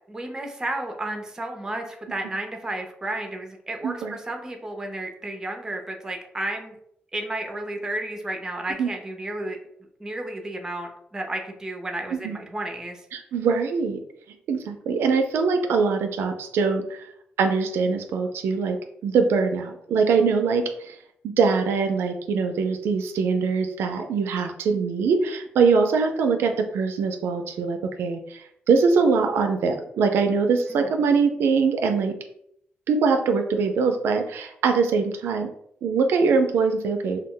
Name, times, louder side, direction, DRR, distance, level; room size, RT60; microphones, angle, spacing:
voice 1, 0.1-6.8 7.1-9.6 10.0-13.0 30.7-30.9, right 1 dB, 15° right, 3 dB, 0.5 m, -32 dB
voice 2, 3.8-4.2 8.8-8.9 12.1-12.4 13.1-14.0 14.5-17.1 17.4-18.8 19.0-21.0 21.2-32.2 32.9-35.5 35.8-37.2, right 5 dB, 85° right, 5 dB, 0.3 m, -23 dB
2.2 x 2.0 x 3.6 m, 0.72 s
cardioid pair, 105°, 4 cm